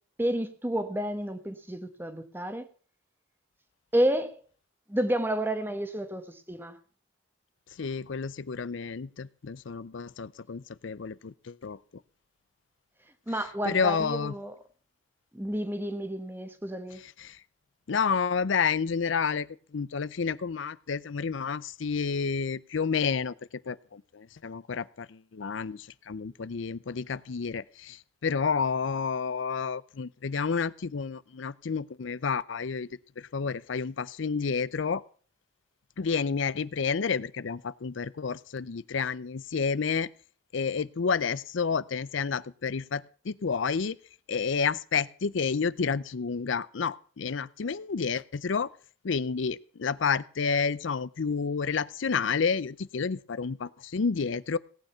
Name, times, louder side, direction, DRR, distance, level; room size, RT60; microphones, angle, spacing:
voice 1, 0.2-2.7 3.9-4.4 4.9-6.8 13.3-14.6 15.3-17.0, right 1 dB, 10° right, 1.1 m, -30 dB
voice 2, 7.8-11.8 13.6-14.3 17.2-17.4 17.9-19.5 19.7-23.3 23.7-32.9 33.2-35.0 36.0-40.1 40.5-44.0 44.3-48.7 49.0-54.6, left 5 dB, 75° left, 0.5 m, -30 dB
17.5 x 9.0 x 5.7 m
head